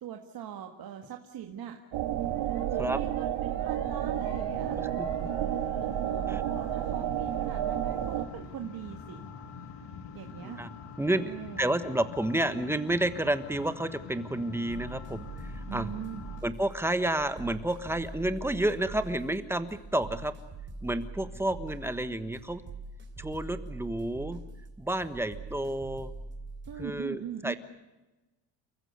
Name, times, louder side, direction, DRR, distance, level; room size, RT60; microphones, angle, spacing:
voice 1, 0.0-1.8 2.5-4.8 5.8-9.2 10.1-10.6 11.1-11.8 15.7-16.3 26.7-27.6, right 9 dB, 55° right, 4 dB, 1.9 m, -41 dB
sound 1, 1.9-8.3, right 11 dB, 80° right, 2.0 m, -31 dB
sound 2, 2.4-16.4, left 6 dB, 70° left, 2.1 m, -45 dB
voice 2, 4.8-5.3 6.3-6.4 10.4-10.7 11.0-15.3 15.5-15.9 16.4-20.3 20.8-22.6 23.2-24.4 24.8-26.1 26.8-27.5, right 1 dB, 5° right, 10 dB, 1.3 m, -30 dB
sound 3, 14.7-26.9, right 3 dB, 25° right, 3.3 m, -43 dB
29.5 x 15.0 x 8.0 m, 1.1 s
cardioid pair, 145°, 43 cm